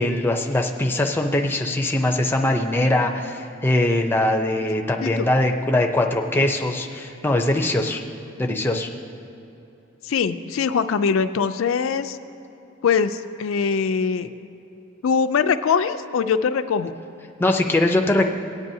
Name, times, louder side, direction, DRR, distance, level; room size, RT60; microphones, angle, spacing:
voice 1, 0.0-8.0 8.4-8.9 17.4-18.3, left 1 dB, 10° left, 2 dB, 0.5 m, -21 dB
voice 2, 10.0-12.2 12.8-14.3 15.0-17.0, left 6 dB, 75° left, 11 dB, 0.4 m, -22 dB
19.5 x 8.9 x 2.7 m, 2.9 s
head